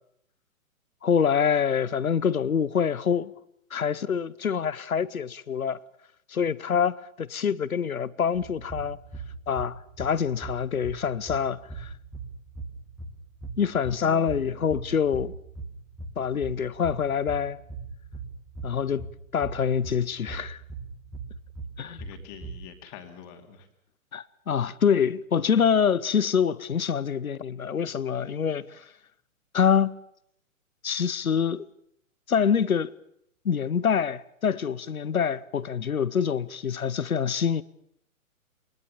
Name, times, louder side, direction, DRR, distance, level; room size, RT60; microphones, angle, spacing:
voice 1, 1.0-3.3 3.7-5.8 6.3-9.0 9.5-11.9 13.6-15.3 16.2-17.6 18.6-19.1 19.3-20.6 21.8-22.0 24.1-28.7 29.5-29.9 30.8-31.6 32.3-32.9 33.4-37.6, left 7 dB, 75° left, 1.0 m, -25 dB
sound 1, 8.3-22.6, right 3 dB, ahead, 2.1 m, -40 dB
voice 2, 13.6-14.1 22.0-23.7 24.1-24.2, left 7 dB, 30° left, 2.6 m, -46 dB
23.5 x 20.0 x 7.2 m
figure-of-eight pair, 120°, 42 cm